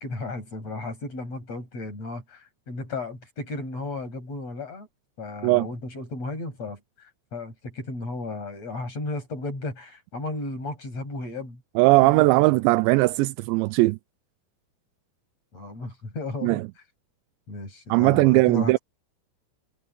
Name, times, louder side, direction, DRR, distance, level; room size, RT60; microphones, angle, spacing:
voice 1, 0.0-4.9 5.2-11.6 12.0-12.2 15.5-16.6 17.5-18.8, left 2 dB, 35° left, 9.0 m, -34 dB
voice 2, 11.8-14.0 16.4-16.6 17.9-18.8, right 22 dB, 85° right, 2.7 m, -19 dB
omnidirectional pair, 5.3 m